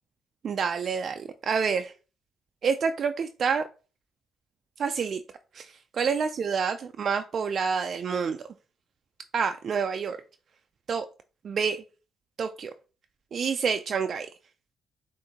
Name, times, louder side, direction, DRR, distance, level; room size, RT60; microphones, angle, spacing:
voice 1, 0.4-1.9 2.6-3.6 4.8-5.2 5.5-8.4 9.3-10.2 10.9-11.1 11.4-11.8 12.4-12.7 13.3-14.3, right 6 dB, 55° right, 8 dB, 0.3 m, -28 dB
6.4 x 2.6 x 2.8 m, 0.35 s
cardioid pair, 90°, 0 cm